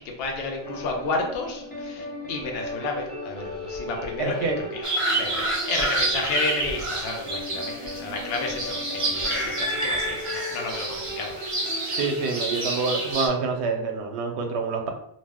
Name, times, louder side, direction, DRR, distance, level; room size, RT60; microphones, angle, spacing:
voice 1, 0.2-4.7 5.1-11.4, left 3 dB, 70° left, 1 dB, 0.8 m, -31 dB
sound 1, 0.6-13.1, left 1 dB, 10° left, 0.8 m, -37 dB
voice 2, 4.2-4.6 11.9-14.9, right 4 dB, 85° right, 4 dB, 0.8 m, -27 dB
sound 2, 4.8-13.3, right 2 dB, 40° right, 0.5 m, -28 dB
2.4 x 2.1 x 3.4 m, 0.72 s
omnidirectional pair, 1.1 m